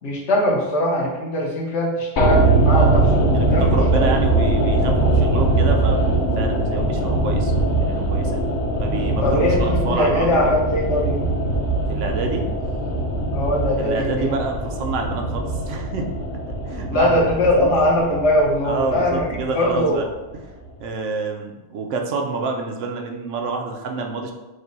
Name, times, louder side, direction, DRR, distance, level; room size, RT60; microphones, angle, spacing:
voice 1, 0.0-4.1 9.2-11.2 13.3-14.3 16.9-19.2 19.5-20.0, left 1 dB, 70° left, -3 dB, 1.3 m, -21 dB
sound 1, 2.2-20.4 20.6-20.7, right 2 dB, 50° left, 0.8 m, -21 dB
voice 2, 2.7-3.1 3.3-8.4 8.8-10.5 11.9-12.5 13.8-16.1 16.7-17.7 18.6-20.1 20.8-24.3, right 4 dB, 80° right, 3 dB, 1.0 m, -28 dB
5.2 x 2.1 x 4.0 m, 1.1 s
omnidirectional pair, 1.2 m